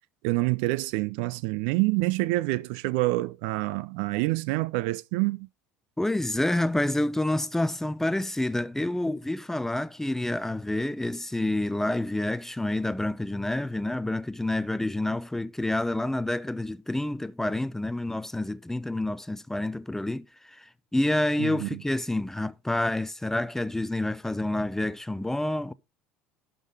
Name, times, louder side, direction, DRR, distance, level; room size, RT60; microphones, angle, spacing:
voice 1, 0.2-5.5 21.4-21.8, right 21 dB, 55° right, 0.4 m, -27 dB
voice 2, 6.0-25.7, left 1 dB, 5° left, 0.4 m, -28 dB
11.5 x 3.9 x 4.7 m
figure-of-eight pair, 65°, 7 cm